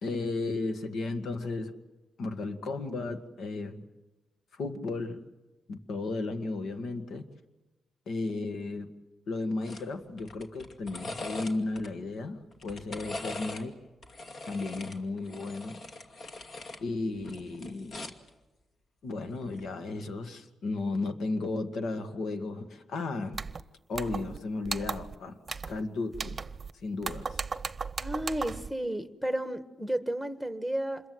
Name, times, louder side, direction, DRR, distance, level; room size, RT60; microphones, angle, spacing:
voice 1, 0.0-1.8 2.2-3.9 4.5-5.2 5.7-7.3 8.1-8.9 9.3-13.7 14.5-15.8 16.8-18.1 19.0-23.4 23.9-25.4 25.7-26.4 26.8-27.4, left 3 dB, 75° left, 7 dB, 1.9 m, -34 dB
sound 1, 9.6-9.9 10.2-11.9 12.5-13.7 14.0-16.8 17.2-18.3 19.5-19.7, left 2 dB, 55° left, 2.4 m, -41 dB
sound 2, 23.3-23.6 23.9-24.4 24.6-25.1 25.5-25.8 26.1-26.7 27.0-28.7, right 5 dB, 35° right, 0.8 m, -36 dB
voice 2, 28.0-31.0, right 1 dB, ahead, 9 dB, 1.5 m, -32 dB
27.0 x 22.0 x 7.9 m, 1.1 s
cardioid pair, 95°, 0 cm